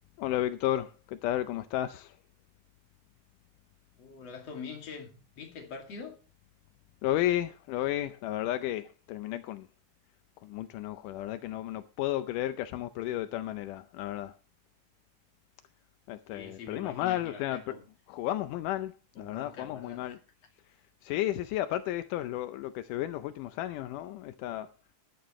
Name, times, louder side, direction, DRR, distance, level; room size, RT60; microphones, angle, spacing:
voice 1, 0.2-2.2 7.0-9.7 10.4-14.3 16.1-17.6 18.1-20.2 21.0-24.7, left 13 dB, 85° left, 2.2 m, -33 dB
voice 2, 4.0-6.2 16.3-17.8 19.1-20.1, left 5 dB, 55° left, 3.3 m, -44 dB
15.5 x 11.5 x 3.1 m
omnidirectional pair, 3.7 m